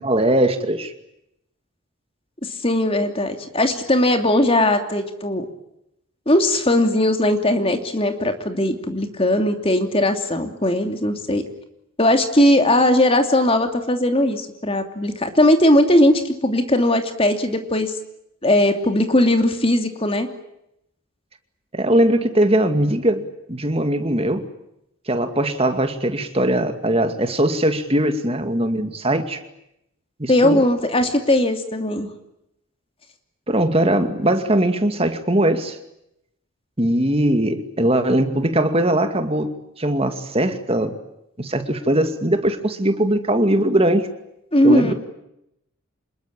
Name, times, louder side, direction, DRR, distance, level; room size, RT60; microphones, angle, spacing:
voice 1, 0.0-0.9 21.7-24.5 25.1-29.4 30.2-30.6 33.5-35.8 36.8-40.9 41.4-44.1 44.6-44.9, right 1 dB, 25° right, 8 dB, 2.3 m, -20 dB
voice 2, 2.4-5.4 6.3-11.4 12.0-17.9 18.4-20.3 30.3-32.1 44.5-44.9, left 1 dB, 25° left, 6 dB, 2.9 m, -19 dB
27.0 x 21.5 x 8.9 m, 0.81 s
head